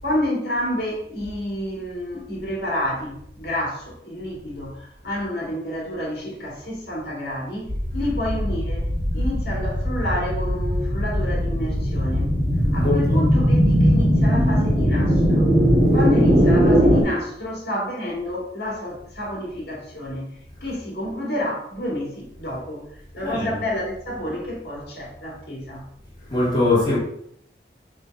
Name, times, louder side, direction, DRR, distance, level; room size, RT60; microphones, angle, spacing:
voice 1, 0.0-12.4 12.7-15.5 15.9-25.8, left 1 dB, 65° left, 2.3 m, -29 dB
sound 1, 7.7-17.0, equal, 55° right, 2.1 m, -19 dB
voice 2, 12.7-13.3 15.9-16.1 20.6-20.8 23.2-23.6 26.3-27.0, left 2 dB, 25° left, 2.2 m, -22 dB
6.8 x 3.4 x 5.3 m
head